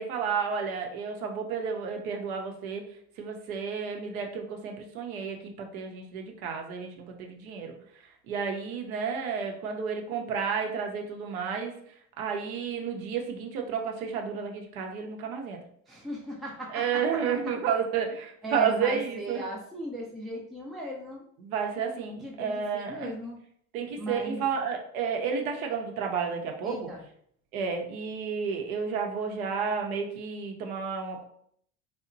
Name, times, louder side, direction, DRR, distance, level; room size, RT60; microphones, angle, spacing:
voice 1, 0.0-2.8 3.2-7.7 8.3-11.7 12.2-15.6 16.7-19.4 21.4-23.1 23.7-26.8 27.5-31.3, right 6 dB, 70° right, 2 dB, 0.7 m, -31 dB
voice 2, 15.9-17.0 18.4-21.2 21.9-23.4 24.0-24.4 26.6-27.0, right 1 dB, ahead, -3 dB, 0.3 m, -37 dB
2.8 x 2.0 x 2.5 m, 0.65 s
hypercardioid pair, 70°, 44 cm